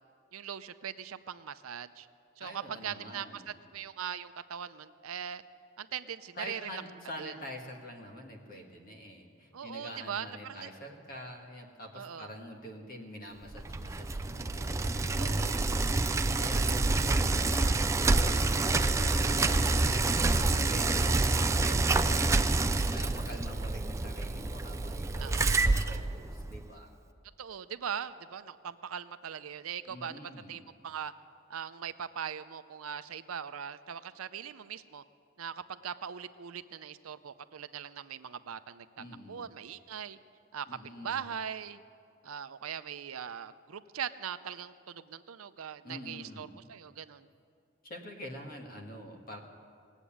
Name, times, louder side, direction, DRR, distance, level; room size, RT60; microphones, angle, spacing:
voice 1, 0.3-2.1 2.4-5.4 5.8-6.8 7.2-7.3 9.5-10.7 11.9-12.3 15.2-15.6 25.2-25.7 27.4-30.2 30.5-31.1 31.5-35.0 35.4-40.2 40.5-40.8 41.0-41.8 42.2-47.3, right 8 dB, 90° right, 12 dB, 0.6 m, -40 dB
voice 2, 2.4-3.5 6.3-17.9 18.1-26.9 29.9-30.6 39.0-39.4 40.7-41.2 45.8-46.5 47.8-49.4, equal, 40° left, 2 dB, 1.7 m, -46 dB
Bicycle, 13.5-26.7, right 3 dB, 15° right, 0.3 m, -27 dB
19.0 x 8.1 x 8.6 m, 2.3 s
head